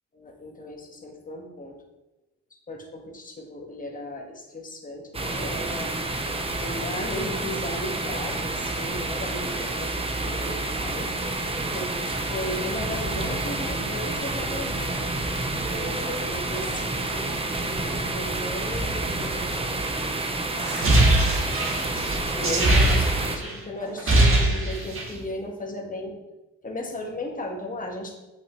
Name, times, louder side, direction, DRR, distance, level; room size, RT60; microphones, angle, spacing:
voice 1, 0.1-1.8 2.7-6.0 6.6-9.8 10.2-15.2 15.7-19.8 22.3-26.2 26.6-28.1, left 1 dB, 25° left, 1 dB, 1.7 m, -36 dB
sound 1, 5.1-23.4, right 2 dB, 20° right, 0.9 m, -29 dB
sound 2, 20.6-23.5 23.8-25.2, right 1 dB, 45° right, 2.0 m, -21 dB
8.3 x 6.2 x 3.2 m, 0.98 s
cardioid pair, 90°, 30 cm